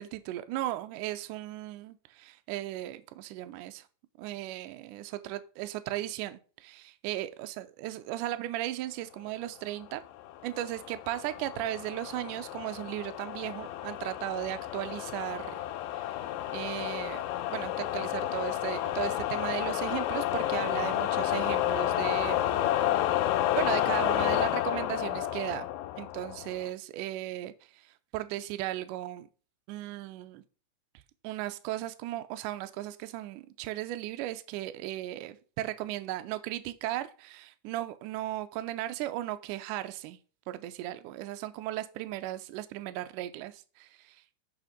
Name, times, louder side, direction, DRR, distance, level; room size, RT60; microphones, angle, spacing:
voice 1, 0.0-3.8 4.2-10.1 10.4-15.5 16.0-16.2 16.5-17.2 17.5-22.7 23.6-25.7 26.0-29.3 29.7-30.4 31.2-40.2 40.5-44.4, right 14 dB, 85° right, 1.8 m, -36 dB
sound 1, 10.2-26.7, left 13 dB, 80° left, 2.5 m, -31 dB
6.3 x 5.8 x 5.0 m
omnidirectional pair, 4.4 m